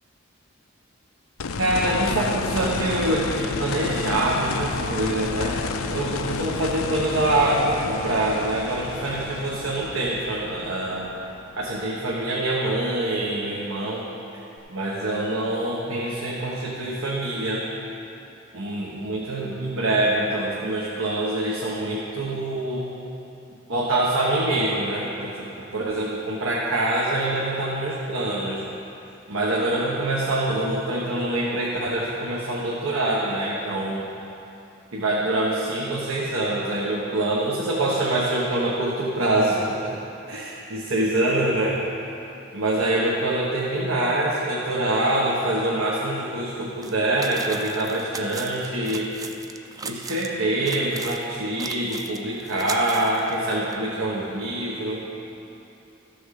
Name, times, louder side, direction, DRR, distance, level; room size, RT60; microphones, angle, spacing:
sound 1, 1.4-12.3 14.6-14.7, left 4 dB, 90° left, 0.5 m, -31 dB
voice 1, 1.6-5.6 5.9-11.1 11.6-14.1 14.7-17.7 18.5-22.9 23.7-28.6 29.3-34.0 34.9-40.0 40.3-41.8 42.5-49.1 49.8-55.1, right 1 dB, 85° right, -5 dB, 1.2 m, -25 dB
sound 2, 46.8-46.9 47.2-50.3 50.6-53.7, right 4 dB, 15° right, 0.4 m, -38 dB
14.0 x 6.2 x 4.9 m, 2.8 s
head